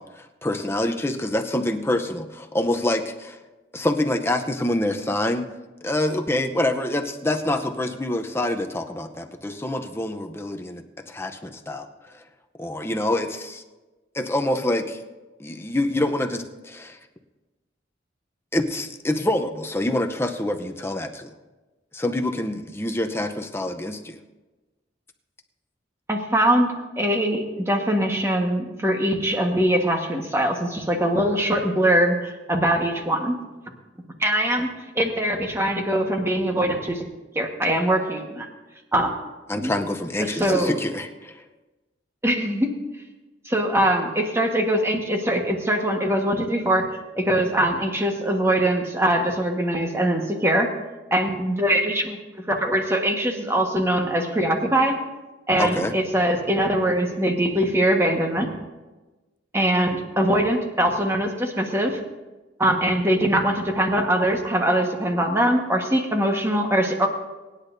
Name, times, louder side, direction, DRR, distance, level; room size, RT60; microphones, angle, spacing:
voice 1, 0.0-3.4 3.7-5.5 5.8-11.9 12.1-12.2 12.6-13.6 14.1-15.0 15.4-17.0 18.5-21.3 21.9-24.2 39.5-41.4 55.6-55.9, left 1 dB, 15° left, 5 dB, 0.7 m, -26 dB
voice 2, 26.1-33.4 34.2-37.0 37.3-38.5 38.9-39.1 39.6-39.7 40.2-40.7 42.2-42.7 43.4-46.8 47.1-50.7 51.1-52.2 52.5-55.0 55.5-58.5 59.5-62.0 62.6-67.1, right 1 dB, 15° right, 2 dB, 1.4 m, -22 dB
23.5 x 10.0 x 2.7 m, 1.2 s
head